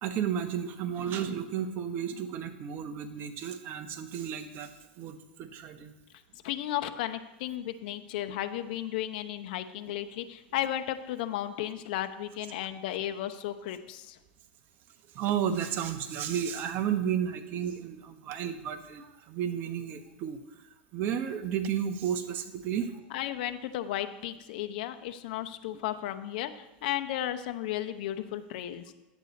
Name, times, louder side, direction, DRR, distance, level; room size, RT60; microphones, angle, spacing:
voice 1, 0.0-5.9 15.1-20.4 20.9-22.9, right 8 dB, 40° right, 9 dB, 1.0 m, -32 dB
voice 2, 6.4-14.1 23.1-26.5 26.8-28.9, left 12 dB, 65° left, 9 dB, 0.8 m, -34 dB
10.5 x 8.2 x 4.1 m, 1.0 s
supercardioid pair, 120°, 5 cm